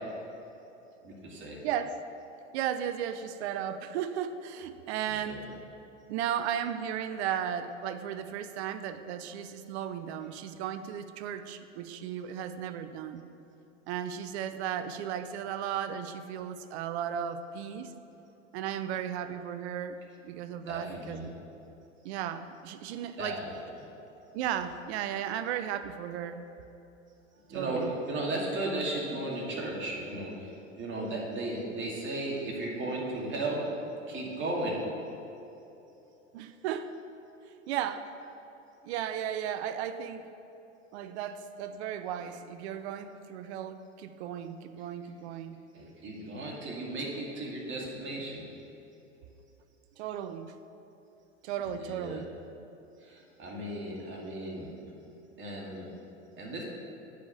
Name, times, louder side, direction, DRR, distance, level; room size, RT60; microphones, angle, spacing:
voice 1, 1.0-1.6 5.1-5.5 20.7-21.3 23.2-23.6 27.5-30.5 30.8-33.6 34.1-34.8 45.7-48.4 51.8-52.2 53.0-54.7 55.4-55.8 56.4-56.6, right 2 dB, 30° right, -3 dB, 2.3 m, -35 dB
voice 2, 1.6-2.0 2.5-5.5 6.1-13.2 13.9-17.9 18.5-20.0 20.2-21.3 22.0-23.4 24.3-26.4 27.5-27.9 36.3-36.9 37.5-38.1 38.8-40.3 40.9-45.6 50.0-50.5 51.4-52.3, right 9 dB, 60° right, 11 dB, 0.7 m, -35 dB
9.3 x 5.0 x 7.1 m, 3.0 s
hypercardioid pair, 100°, 38 cm